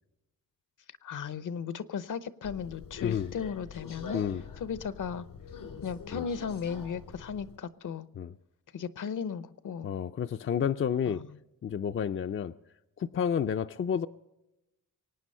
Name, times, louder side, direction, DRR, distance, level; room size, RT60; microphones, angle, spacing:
voice 1, 1.0-4.2 4.6-5.3 5.8-8.1 8.7-9.9 11.1-11.3, left 6 dB, 65° left, 0.8 m, -36 dB
Subway metro underground, 2.4-7.6, left 5 dB, 85° left, 2.4 m, -45 dB
voice 2, 3.0-3.3 4.1-4.4 6.1-6.2 8.2-8.3 9.8-11.2 11.6-12.5 13.0-14.1, left 8 dB, 40° left, 0.4 m, -30 dB
24.0 x 9.2 x 5.5 m
cardioid pair, 100°, 33 cm